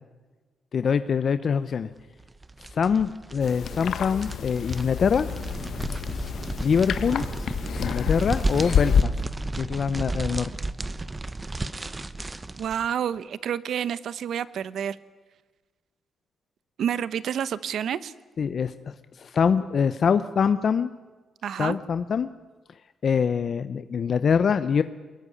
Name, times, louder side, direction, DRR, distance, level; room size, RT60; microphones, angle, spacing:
voice 1, 0.7-1.9 2.7-5.3 6.6-7.2 7.8-9.1 9.6-10.5 18.4-20.9 21.6-22.3 23.0-24.8, left 6 dB, 50° left, 12 dB, 0.8 m, -24 dB
sound 1, 2.2-12.9, right 2 dB, 20° right, 1.0 m, -33 dB
sound 2, 3.4-9.0, left 7 dB, 70° left, 1.4 m, -28 dB
voice 2, 12.6-15.0 16.8-18.1 21.4-21.8, right 9 dB, 75° right, 17 dB, 1.0 m, -29 dB
24.0 x 21.0 x 10.0 m, 1.3 s
cardioid pair, 115°, 0 cm